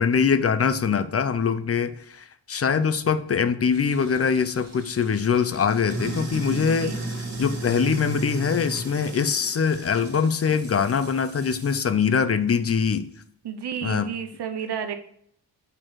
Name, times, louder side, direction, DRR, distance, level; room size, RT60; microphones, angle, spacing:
voice 1, 0.0-7.0 7.4-13.1 13.8-14.1, left 6 dB, 35° left, 12 dB, 0.5 m, -23 dB
Sink (filling or washing), 3.7-11.9, right 2 dB, 35° right, 2.3 m, -35 dB
voice 2, 13.4-14.9, right 7 dB, 70° right, 8 dB, 0.9 m, -31 dB
6.3 x 4.3 x 4.6 m, 0.66 s
wide cardioid pair, 125°, 42 cm